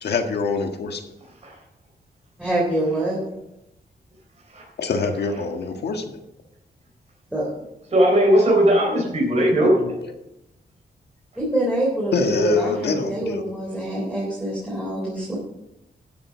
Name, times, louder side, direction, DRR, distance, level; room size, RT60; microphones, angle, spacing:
voice 1, 0.0-1.0 4.8-6.2 9.6-9.9 12.1-13.4, left 4 dB, 75° left, 5 dB, 1.6 m, -24 dB
voice 2, 2.4-3.2 7.3-7.5 11.4-15.4, right 1 dB, 5° right, -6 dB, 3.7 m, -25 dB
voice 3, 7.9-9.7, right 1 dB, 40° right, -2 dB, 4.1 m, -17 dB
12.0 x 7.6 x 6.2 m, 0.87 s
wide cardioid pair, 145°, 17 cm